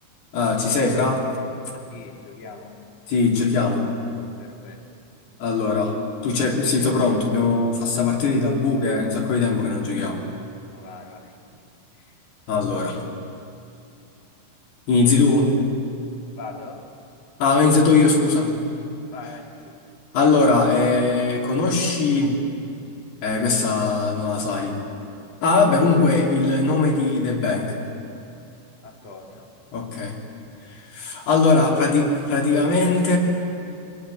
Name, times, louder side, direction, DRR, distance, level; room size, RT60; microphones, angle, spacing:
voice 1, 0.3-1.3 3.1-3.9 5.4-10.3 12.5-13.0 14.9-15.5 17.4-18.6 20.1-22.4 23.2-24.8 25.4-27.8 29.7-30.2 30.9-33.2, left 3 dB, 60° left, -1 dB, 5.0 m, -20 dB
voice 2, 1.9-2.8 4.4-4.8 8.3-8.7 10.7-11.6 11.9-12.1 16.4-16.8 19.1-19.7 28.8-29.5, left 4 dB, 40° left, -1 dB, 2.7 m, -42 dB
27.5 x 20.5 x 9.7 m, 2.6 s
omnidirectional pair, 5.5 m